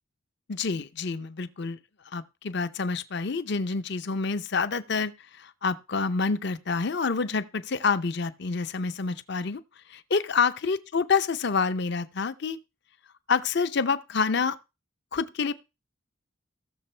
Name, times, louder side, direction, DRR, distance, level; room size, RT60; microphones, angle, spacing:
voice 1, 0.5-1.8 2.1-9.6 9.9-12.6 13.3-14.6 15.1-15.5, left 5 dB, 55° left, 0.7 m, -27 dB
18.0 x 6.8 x 3.3 m
head